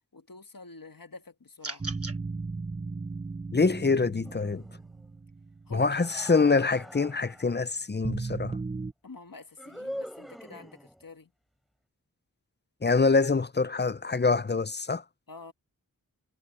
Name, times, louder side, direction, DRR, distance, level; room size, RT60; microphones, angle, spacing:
voice 1, 0.1-1.8 5.7-5.9 9.0-11.3 15.3-15.5, left 3 dB, 70° left, 1.5 m, -47 dB
sound 1, 1.6-2.2, right 3 dB, 40° right, 1.3 m, -37 dB
sound 2, 1.8-6.9 8.0-8.9, right 3 dB, 20° right, 0.3 m, -36 dB
voice 2, 3.5-4.6 5.7-8.6 12.8-15.0, left 4 dB, 30° left, 0.6 m, -25 dB
sound 3, 4.2-5.1 5.8-7.6 9.6-11.1, equal, ahead, 4.7 m, -43 dB
wide cardioid pair, 50°, 35 cm